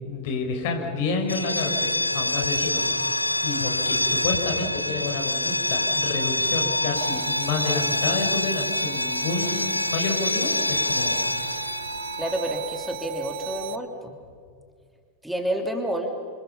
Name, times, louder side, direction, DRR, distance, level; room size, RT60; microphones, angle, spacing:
voice 1, 0.0-2.9 3.4-11.2, left 4 dB, 50° left, 3 dB, 5.5 m, -29 dB
sound 1, 1.2-12.9, left 1 dB, 85° left, 0.7 m, -26 dB
sound 2, 7.0-13.8, right 16 dB, 50° right, 1.0 m, -38 dB
voice 2, 12.2-14.1 15.2-16.1, right 1 dB, 5° right, 3 dB, 2.9 m, -29 dB
28.5 x 27.5 x 5.7 m, 2.2 s
figure-of-eight pair, 90°, 0 cm